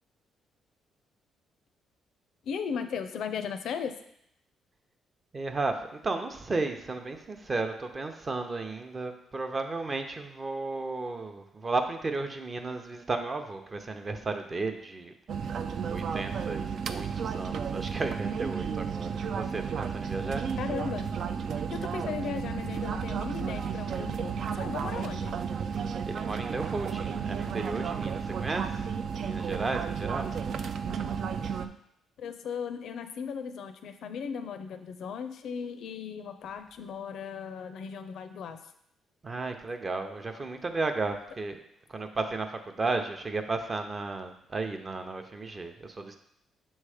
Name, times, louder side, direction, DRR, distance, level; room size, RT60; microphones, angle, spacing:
voice 1, 2.4-3.9 20.6-21.1 21.7-25.4 32.2-38.6, left 6 dB, 70° left, 9 dB, 0.5 m, -36 dB
voice 2, 5.3-15.1 15.9-20.4 26.1-28.8 29.2-30.5 39.2-41.6 41.9-46.2, right 3 dB, 30° right, 6 dB, 0.7 m, -34 dB
sound 1, 15.3-31.7, right 6 dB, 65° right, 0.4 m, -33 dB
6.4 x 3.2 x 4.9 m, 0.74 s
cardioid pair, 90°, 0 cm